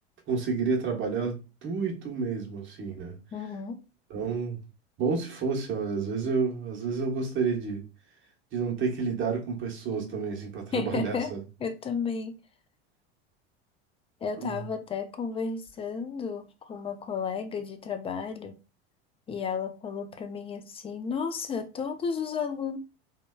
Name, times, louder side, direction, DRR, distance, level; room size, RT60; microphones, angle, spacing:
voice 1, 0.3-3.1 4.1-4.6 5.0-7.8 8.5-11.4 14.4-14.6, right 5 dB, 40° right, 0.9 m, -30 dB
voice 2, 3.3-3.8 10.7-11.3 11.6-12.4 14.2-18.6 19.3-22.8, left 6 dB, 20° left, 0.4 m, -33 dB
2.9 x 2.2 x 2.2 m
hypercardioid pair, 100°, 30 cm